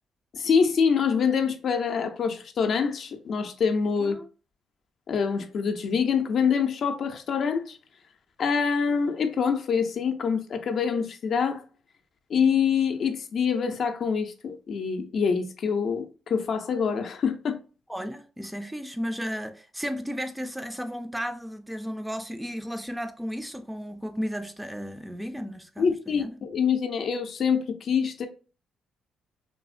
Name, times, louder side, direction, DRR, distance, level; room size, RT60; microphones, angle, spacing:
voice 1, 0.3-4.2 5.1-7.8 8.4-11.6 12.3-17.6 25.8-28.3, left 6 dB, 60° left, 0.4 m, -25 dB
voice 2, 17.9-26.4, equal, 5° right, 0.3 m, -34 dB
3.2 x 2.1 x 2.4 m
cardioid pair, 90°, 0 cm